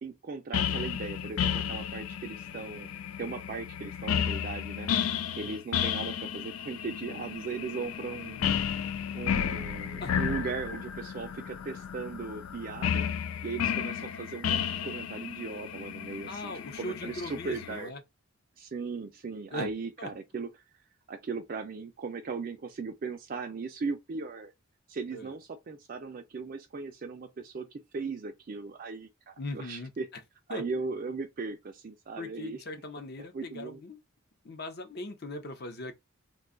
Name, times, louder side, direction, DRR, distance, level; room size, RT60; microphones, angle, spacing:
voice 1, 0.0-2.9 3.2-4.9 5.3-8.5 9.1-13.1 13.4-16.5 16.8-17.9 18.6-20.5 21.1-24.5 24.9-30.1 30.5-32.6 33.3-33.8, right 4 dB, 45° right, 0.4 m, -38 dB
sound 1, 0.5-17.8, left 8 dB, 85° left, 0.4 m, -33 dB
voice 2, 16.3-18.0 19.5-19.7 20.0-20.1 25.1-25.3 29.4-29.9 30.5-30.6 32.2-34.0 34.4-35.9, left 1 dB, 50° left, 0.7 m, -39 dB
2.6 x 2.3 x 3.7 m
head